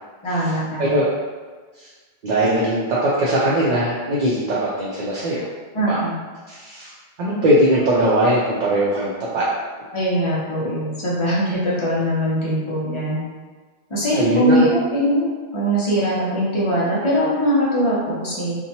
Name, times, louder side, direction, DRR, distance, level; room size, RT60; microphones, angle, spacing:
voice 1, 0.2-1.0 5.7-6.2 9.9-13.2 13.9-18.6, equal, 35° left, -7 dB, 0.7 m, -21 dB
voice 2, 2.2-5.5 5.8-6.0 6.5-6.9 7.2-9.5 14.1-14.7, right 1 dB, 55° right, -7 dB, 0.6 m, -20 dB
2.8 x 2.2 x 2.7 m, 1.4 s
omnidirectional pair, 1.0 m